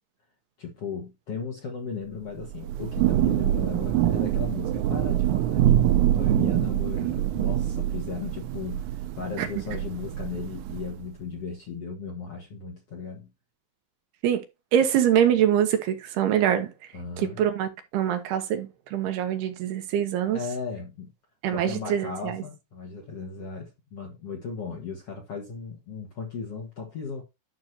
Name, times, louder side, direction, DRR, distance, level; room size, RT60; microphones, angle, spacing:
voice 1, 0.6-13.3 16.9-17.4 20.3-21.1 21.5-27.2, left 5 dB, 70° left, 1.4 m, -36 dB
Thunder / Rain, 2.4-11.0, right 12 dB, 90° right, 3.2 m, -25 dB
voice 2, 14.7-16.7 17.2-20.4 21.4-22.4, right 10 dB, 70° right, 2.7 m, -24 dB
12.0 x 6.2 x 2.8 m
omnidirectional pair, 5.4 m